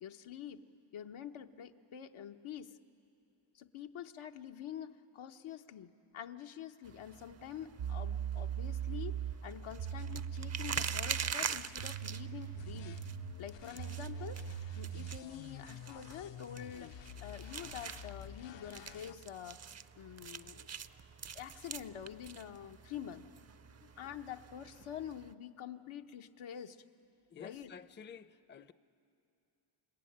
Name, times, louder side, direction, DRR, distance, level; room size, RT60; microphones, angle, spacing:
voice 1, 0.0-0.6 0.9-2.7 3.5-13.0 13.4-19.6 20.0-20.7 21.3-23.3 24.0-26.8 27.4-27.7, left 9 dB, 85° left, 1.0 m, -47 dB
sound 1, 6.8-25.3, right 7 dB, 35° right, 0.5 m, -45 dB
sound 2, 7.8-15.3, right 9 dB, 70° right, 0.7 m, -41 dB
sound 3, 12.5-19.1, left 11 dB, 65° left, 0.6 m, -50 dB
voice 2, 27.3-28.7, left 7 dB, 25° left, 0.5 m, -51 dB
29.5 x 19.0 x 8.6 m
cardioid pair, 90°, 48 cm